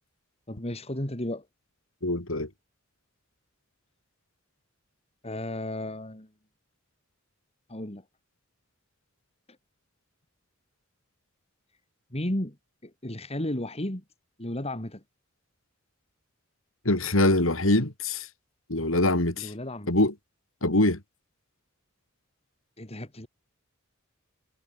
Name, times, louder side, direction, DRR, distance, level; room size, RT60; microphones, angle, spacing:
voice 1, 0.5-1.5 5.2-6.3 7.7-8.0 12.1-12.6 12.8-14.0 14.4-15.0 19.4-19.9 22.8-23.3, left 1 dB, 30° left, 3.4 m, -33 dB
voice 2, 2.0-2.5 16.9-18.3 18.7-19.5 19.9-20.1 20.6-21.0, left 1 dB, 70° left, 3.7 m, -23 dB
head